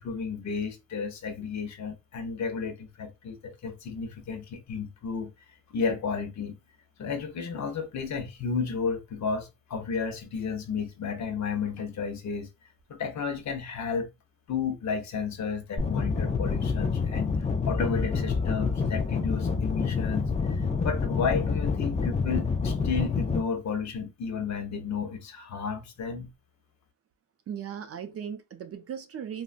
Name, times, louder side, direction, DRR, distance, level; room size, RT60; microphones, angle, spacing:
voice 1, 0.0-5.3 5.7-6.6 7.0-12.5 12.9-14.1 14.5-17.3 17.6-26.3, left 5 dB, 55° left, 0.7 m, -32 dB
sound 1, 15.8-23.4, left 5 dB, 20° left, 0.3 m, -27 dB
voice 2, 27.5-29.4, right 8 dB, 45° right, 0.5 m, -37 dB
3.7 x 2.1 x 2.4 m
cardioid pair, 140°, 35 cm